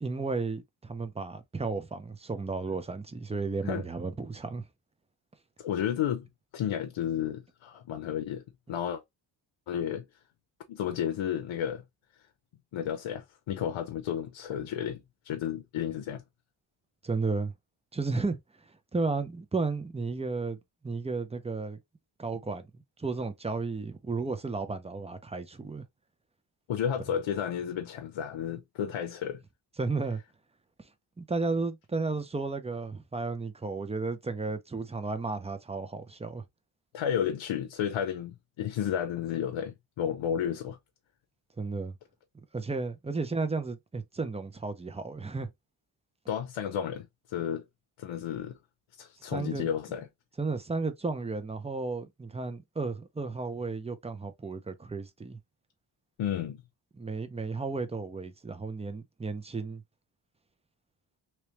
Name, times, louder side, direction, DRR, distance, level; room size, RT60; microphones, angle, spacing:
voice 1, 0.0-4.6 17.0-17.5 17.9-18.4 18.9-20.6 20.8-21.8 22.2-25.8 29.8-30.2 31.2-36.4 41.6-42.0 42.3-45.5 49.3-49.7 50.4-55.4 57.0-59.8, right 3 dB, 15° right, 0.4 m, -33 dB
voice 2, 5.6-6.3 6.5-9.0 9.7-10.0 10.7-11.8 12.7-16.2 26.7-29.4 36.9-40.8 46.3-47.6 48.0-48.6 49.0-50.1 56.2-56.6, left 9 dB, 85° left, 0.7 m, -32 dB
3.3 x 2.9 x 2.8 m
wide cardioid pair, 155°, 47 cm